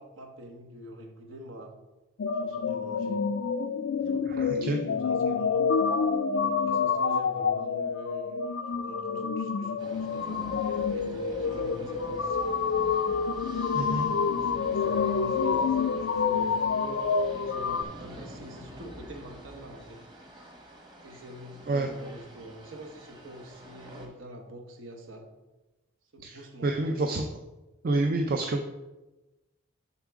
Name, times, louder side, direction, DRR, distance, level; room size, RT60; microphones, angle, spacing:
voice 1, 0.0-1.7 2.3-3.2 4.0-5.6 6.3-8.4 8.8-12.8 13.7-20.0 21.0-25.3 26.1-27.2, right 1 dB, 75° right, 3 dB, 1.1 m, -45 dB
sound 1, 2.2-17.8, left 5 dB, 65° left, 0.4 m, -28 dB
voice 2, 4.3-4.8 13.7-14.1 21.7-21.9 26.2-27.3 27.8-28.6, right 2 dB, 45° right, 4 dB, 0.4 m, -28 dB
sound 2, 9.8-24.1, right 1 dB, 20° right, 1.1 m, -47 dB
7.2 x 5.9 x 3.6 m, 1.1 s
head